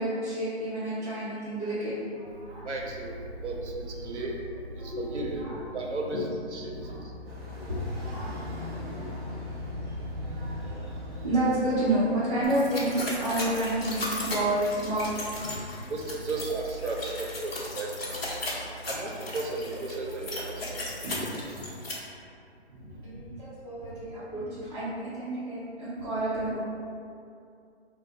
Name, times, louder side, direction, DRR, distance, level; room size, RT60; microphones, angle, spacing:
voice 1, 0.0-2.7 4.8-5.6 6.1-6.3 6.7-7.0 7.5-9.2 9.9-10.9 11.2-15.9 21.0-21.3 21.6-22.1 22.7-26.6, right 1 dB, 35° right, -12 dB, 0.7 m, -31 dB
voice 2, 2.6-4.3 4.8-5.4 5.7-6.7 15.9-17.1 17.4-18.2 18.9-20.8, right 2 dB, 90° right, -1 dB, 0.6 m, -34 dB
sound 1, 2.8-15.3, left 2 dB, 5° right, 0.5 m, -44 dB
sound 2, 7.2-13.1, equal, 60° right, 1.2 m, -42 dB
sound 3, 12.4-21.9, left 2 dB, 60° left, 0.8 m, -36 dB
2.6 x 2.1 x 3.9 m, 2.4 s
hypercardioid pair, 150°, 34 cm